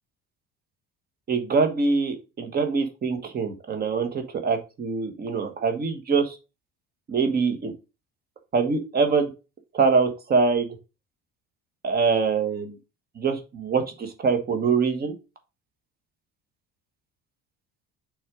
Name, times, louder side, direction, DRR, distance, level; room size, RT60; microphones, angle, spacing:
voice 1, 1.3-6.4 7.1-7.7 8.5-9.3 9.7-10.7 11.8-12.7 13.2-15.1, right 5 dB, 30° right, 6 dB, 1.3 m, -24 dB
6.1 x 3.7 x 4.9 m, 0.29 s
cardioid pair, 155°, 31 cm